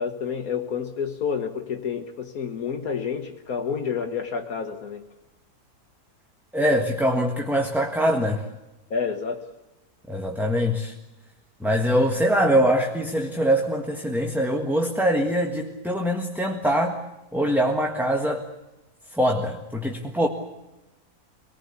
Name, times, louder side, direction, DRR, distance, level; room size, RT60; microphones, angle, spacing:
voice 1, 0.0-5.1 8.9-9.4 12.5-12.6, left 6 dB, 70° left, 5 dB, 1.7 m, -29 dB
voice 2, 6.5-8.4 10.1-10.9 11.6-17.0 17.3-18.4 19.1-20.3, equal, ahead, 2 dB, 1.5 m, -23 dB
25.0 x 19.0 x 8.4 m, 1.0 s
omnidirectional pair, 1.6 m